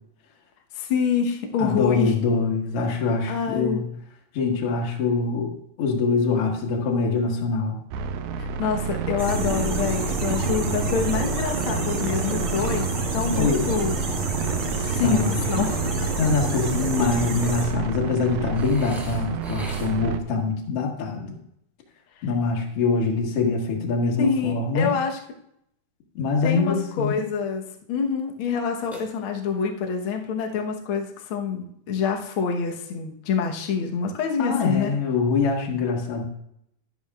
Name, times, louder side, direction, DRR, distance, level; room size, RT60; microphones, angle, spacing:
voice 1, 0.7-2.1 3.3-3.8 8.4-14.0 14.9-16.1 22.2-22.3 24.2-25.2 26.4-34.9, left 6 dB, 80° left, 2 dB, 1.1 m, -26 dB
voice 2, 1.6-3.9 4.3-7.8 13.3-13.7 14.8-15.3 16.2-21.3 22.2-24.9 26.2-27.2 34.4-36.2, left 4 dB, 50° left, -1 dB, 2.1 m, -24 dB
sound 1, 7.9-20.2, right 6 dB, 80° right, 1.8 m, -30 dB
sound 2, 9.2-17.6, right 2 dB, 40° right, 2.6 m, -28 dB
Burping eructation, 18.5-20.2 28.9-29.7, equal, ahead, 0.9 m, -42 dB
12.0 x 11.0 x 2.4 m, 0.74 s
omnidirectional pair, 4.1 m